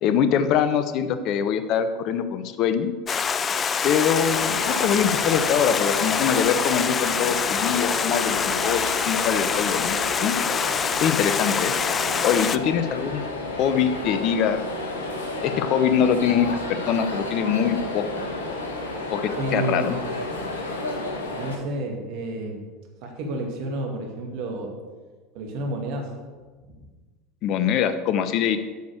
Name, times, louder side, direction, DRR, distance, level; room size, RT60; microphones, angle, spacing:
voice 1, 0.0-2.9 3.8-10.3 11.0-11.7 12.2-13.2 13.6-14.7 15.4-18.3 19.1-19.9 27.4-28.6, left 8 dB, 50° left, 11 dB, 0.8 m, -23 dB
Stream, 3.1-12.6, left 6 dB, 30° left, 0.4 m, -25 dB
sound 1, 4.1-21.6, left 2 dB, 80° left, 1.5 m, -32 dB
voice 2, 19.3-20.0 21.4-22.7 23.0-24.7 25.3-26.1 26.7-26.9, right 1 dB, 55° right, 1 dB, 2.2 m, -30 dB
8.4 x 6.1 x 6.6 m, 1.3 s
figure-of-eight pair, 75°, 0 cm